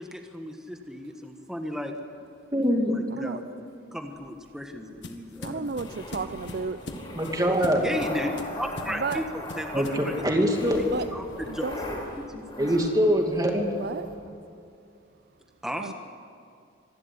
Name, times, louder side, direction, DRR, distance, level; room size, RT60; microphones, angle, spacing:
voice 1, 0.0-1.9 2.9-3.6 3.9-6.0 7.8-10.4 11.1-11.7 12.3-12.7 15.6-15.9, equal, 5° right, 4 dB, 1.5 m, -35 dB
voice 2, 2.5-3.0 7.2-7.8 9.7-10.8 12.6-13.7, equal, 20° right, 2 dB, 2.5 m, -23 dB
sound 1, 4.1-10.1, left 1 dB, 60° left, 1.8 m, -42 dB
voice 3, 5.4-6.8 9.0-9.2 10.8-11.1 11.5-11.8 13.7-14.1 15.8-15.9, right 4 dB, 50° right, 11 dB, 0.5 m, -32 dB
sound 2, 5.7-14.2, left 1 dB, 25° left, 4.7 m, -39 dB
26.0 x 12.5 x 9.9 m, 2.5 s
head